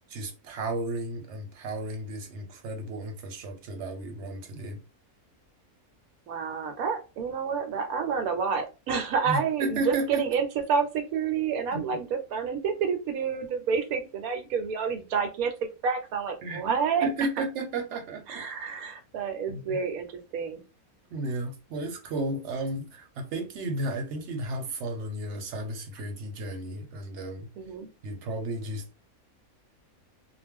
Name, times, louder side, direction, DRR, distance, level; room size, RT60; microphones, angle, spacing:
voice 1, 0.1-4.8 9.3-10.3 11.7-11.8 16.4-16.6 17.0-18.4 19.5-19.8 21.1-27.5 28.0-29.0, right 2 dB, 60° right, 0.9 m, -33 dB
voice 2, 6.3-15.5 15.8-17.1 18.3-20.6 27.6-27.9, right 6 dB, 80° right, 1.0 m, -29 dB
2.4 x 2.1 x 3.5 m
omnidirectional pair, 1.5 m